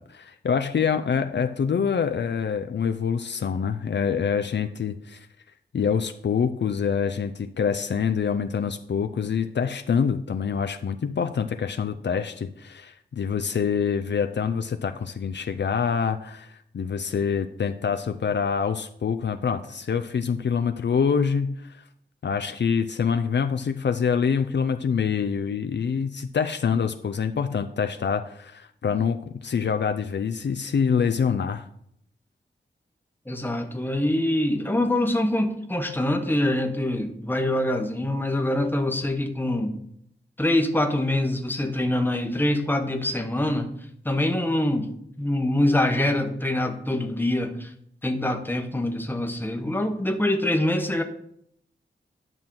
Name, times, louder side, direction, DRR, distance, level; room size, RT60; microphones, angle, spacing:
voice 1, 0.0-5.3 5.7-21.8 22.2-31.7, left 6 dB, 65° left, 7 dB, 0.5 m, -26 dB
voice 2, 33.3-39.8 40.4-43.8 44.0-44.9 45.2-47.7 48.0-51.0, left 1 dB, 10° left, 5 dB, 1.0 m, -24 dB
10.5 x 6.0 x 3.8 m, 0.71 s
wide cardioid pair, 70°, 20 cm